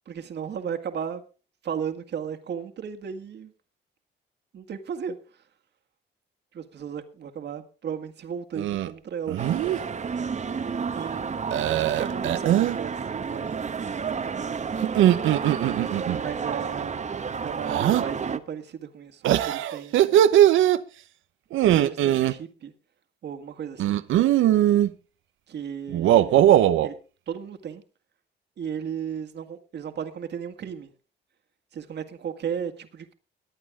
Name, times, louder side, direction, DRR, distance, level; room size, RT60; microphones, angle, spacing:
voice 1, 0.1-1.2 1.6-3.5 4.5-5.4 6.5-9.5 10.9-13.7 16.2-17.1 17.4-20.2 21.6-22.7 23.2-24.0 25.5-26.4 26.8-27.0 27.3-27.8 28.6-30.9 31.7-33.1, right 7 dB, 60° right, 1.9 m, -35 dB
sound 1, 8.6-8.9 9.3-9.8 11.5-12.8 14.8-16.2 17.7-18.0 19.2-20.8 21.5-22.3 23.8-24.9 25.9-26.9, right 12 dB, 80° right, 0.8 m, -20 dB
sound 2, 9.4-18.4, right 6 dB, 35° right, 1.1 m, -31 dB
21.0 x 8.6 x 3.7 m
cardioid pair, 90°, 20 cm